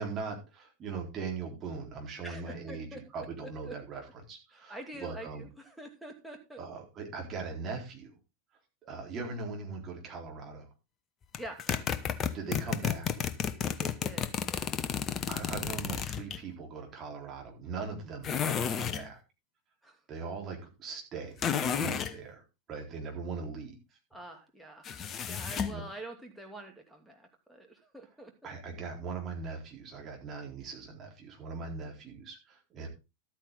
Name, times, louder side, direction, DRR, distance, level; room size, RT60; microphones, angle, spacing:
voice 1, 0.0-5.5 6.6-8.1 8.8-10.7 12.3-13.1 15.3-19.2 20.1-22.4 22.7-23.8 25.2-25.8 28.4-32.9, right 4 dB, 30° right, 0 dB, 4.0 m, -40 dB
voice 2, 2.2-3.0 3.4-3.7 4.5-6.6 11.4-11.6 13.6-14.8 19.8-20.0 24.1-24.9 25.3-28.5, right 1 dB, ahead, 1 dB, 2.8 m, -46 dB
sound 1, 11.3-16.4 18.2-19.1 21.4-22.1 24.8-25.8, left 8 dB, 25° left, 0.9 m, -32 dB
13.0 x 9.0 x 3.8 m, 0.28 s
figure-of-eight pair, 90°, 0 cm